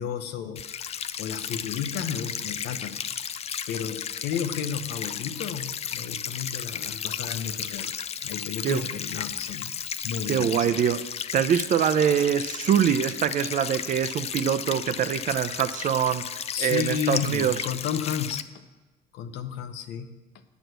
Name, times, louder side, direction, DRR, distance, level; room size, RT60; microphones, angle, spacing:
voice 1, 0.0-3.3 3.7-7.9 8.2-9.7 10.0-10.7 16.5-18.5 19.1-20.1, left 8 dB, 85° left, 0.9 m, -32 dB
sound 1, 0.6-18.4, left 8 dB, 40° left, 0.4 m, -34 dB
Camera, 3.4-10.4, left 8 dB, 60° left, 1.0 m, -45 dB
voice 2, 10.3-11.0 11.3-17.6, right 9 dB, 50° right, 0.6 m, -24 dB
9.6 x 6.2 x 8.0 m
cardioid pair, 110°, 17 cm